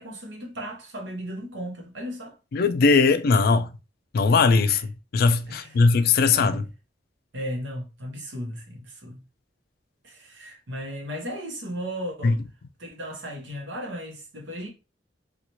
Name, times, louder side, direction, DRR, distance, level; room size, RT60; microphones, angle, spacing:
voice 1, 0.0-2.4 4.7-4.8 5.5-5.8 6.4-6.6 7.3-9.2 10.0-12.4 12.8-14.7, equal, 80° right, 0.9 m, -35 dB
voice 2, 2.5-3.7 4.1-4.8 5.1-6.6 12.2-12.3, left 4 dB, 55° left, 0.4 m, -19 dB
2.9 x 2.4 x 2.7 m
head